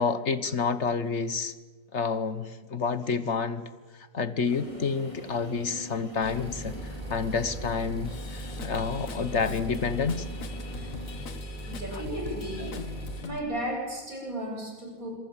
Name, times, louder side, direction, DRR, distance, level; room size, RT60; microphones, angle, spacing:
voice 1, 0.0-1.5 1.9-3.7 4.1-10.3, left 5 dB, 55° left, 12 dB, 1.5 m, -29 dB
sound 1, 4.5-11.2, left 1 dB, 20° left, 3.8 m, -44 dB
sound 2, 6.2-13.2, right 1 dB, 35° right, 5.1 m, -39 dB
Drum kit / Drum, 8.1-13.4, left 5 dB, 70° left, 1.7 m, -43 dB
voice 2, 11.7-12.8 13.2-15.2, right 1 dB, 85° right, 0 dB, 7.6 m, -34 dB
26.5 x 23.5 x 7.4 m, 1.3 s
omnidirectional pair, 1.4 m